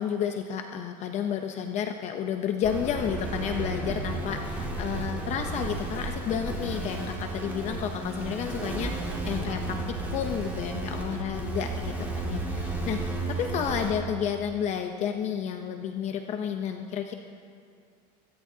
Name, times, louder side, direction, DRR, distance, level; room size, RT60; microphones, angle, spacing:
voice 1, 0.0-13.0 13.3-17.1, left 8 dB, 40° left, 5 dB, 0.7 m, -31 dB
sound 1, 2.6-13.9, right 2 dB, 10° right, 2.3 m, -33 dB
23.5 x 16.5 x 2.8 m, 2.3 s
cardioid pair, 155°, 18 cm